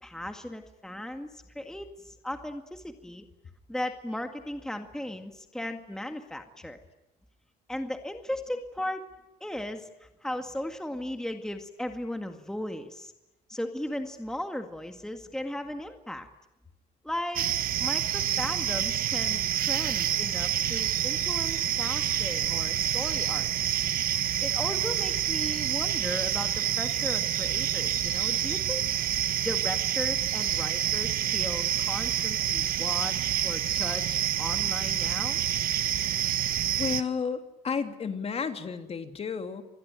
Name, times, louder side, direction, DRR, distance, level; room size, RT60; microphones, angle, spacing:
voice 1, 0.0-3.2 3.7-6.8 7.7-9.0 9.4-13.1 13.5-16.3 17.0-17.5 17.8-23.8 24.4-28.8 29.4-35.4, left 1 dB, 5° left, 6 dB, 2.0 m, -36 dB
sound 1, 17.3-37.0, right 11 dB, 60° right, 1.4 m, -28 dB
voice 2, 36.8-39.6, left 6 dB, 35° left, 7 dB, 2.8 m, -32 dB
27.5 x 21.0 x 9.1 m, 0.94 s
cardioid pair, 110°, 17 cm